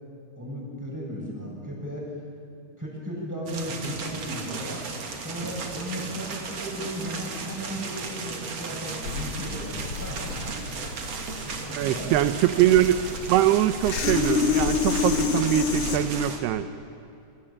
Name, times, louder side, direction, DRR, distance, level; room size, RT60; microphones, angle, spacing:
voice 1, 0.3-2.1 2.8-4.8 5.2-10.6 11.4-12.4, equal, 5° right, -3 dB, 7.8 m, -35 dB
sound 1, 3.5-16.4, right 4 dB, 45° right, 3.2 m, -35 dB
sound 2, 9.0-16.0, left 6 dB, 45° left, 2.0 m, -28 dB
voice 2, 11.8-13.0 13.3-16.7, right 13 dB, 85° right, 11 dB, 2.8 m, -22 dB
26.5 x 24.0 x 8.9 m, 2.6 s
omnidirectional pair, 4.6 m